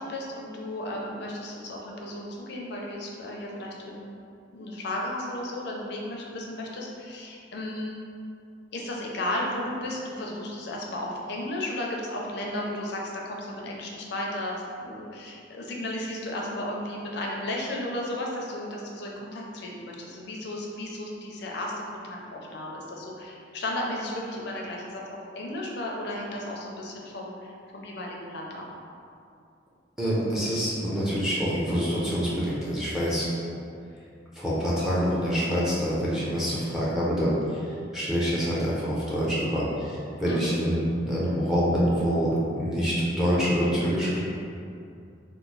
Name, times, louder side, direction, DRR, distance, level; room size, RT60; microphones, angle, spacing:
voice 1, 0.0-4.1 4.5-8.0 8.7-14.5 14.8-25.0 25.3-28.7 40.3-40.6, left 1 dB, 65° left, -2 dB, 0.5 m, -34 dB
voice 2, 30.0-33.5 34.4-37.4 37.9-42.3 42.6-44.2, equal, ahead, -8 dB, 0.5 m, -26 dB
3.0 x 2.0 x 3.8 m, 2.5 s
head